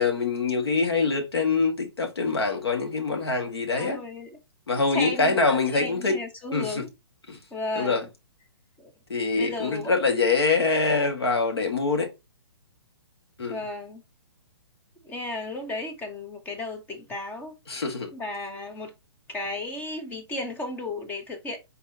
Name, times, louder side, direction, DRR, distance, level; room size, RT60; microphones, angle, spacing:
voice 1, 0.0-4.0 4.7-6.2 6.5-6.8 7.3-7.4 7.7-8.1 9.1-12.1 13.4-13.6 17.7-18.1, left 4 dB, 75° left, 1.6 m, -24 dB
voice 2, 3.7-4.4 4.9-6.9 7.5-8.1 8.8-8.9 9.4-9.9 13.5-14.0 15.0-17.6 18.1-18.9 19.3-21.6, left 2 dB, 15° left, 0.9 m, -34 dB
4.2 x 3.9 x 2.7 m
figure-of-eight pair, 130°, 13 cm